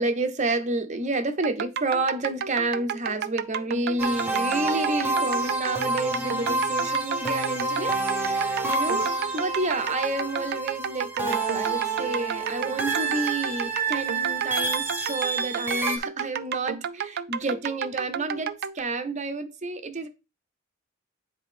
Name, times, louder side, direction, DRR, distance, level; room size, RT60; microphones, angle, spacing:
voice 1, 0.0-20.1, right 2 dB, 35° right, 0.8 m, -30 dB
sound 1, 1.4-18.8, right 7 dB, 50° right, 0.4 m, -32 dB
sound 2, 4.0-16.0, right 3 dB, 10° right, 0.9 m, -28 dB
9.6 x 3.6 x 3.4 m
head